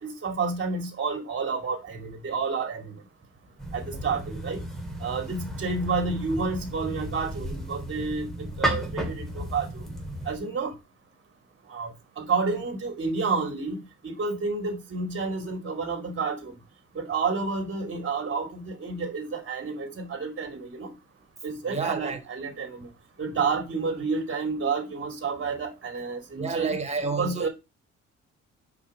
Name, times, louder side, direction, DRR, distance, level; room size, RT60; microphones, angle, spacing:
voice 1, 0.0-2.9 3.7-4.6 5.0-9.7 10.3-10.7 11.7-11.9 12.2-13.8 14.0-16.5 16.9-20.9 21.4-22.9 23.2-26.7 27.2-27.5, right 4 dB, 40° right, 2.4 m, -30 dB
sound 1, 3.6-10.4, right 1 dB, ahead, 2.3 m, -34 dB
voice 2, 21.7-22.2 26.3-27.5, right 5 dB, 20° right, 1.5 m, -30 dB
5.6 x 4.9 x 5.2 m
cardioid pair, 90°, 30 cm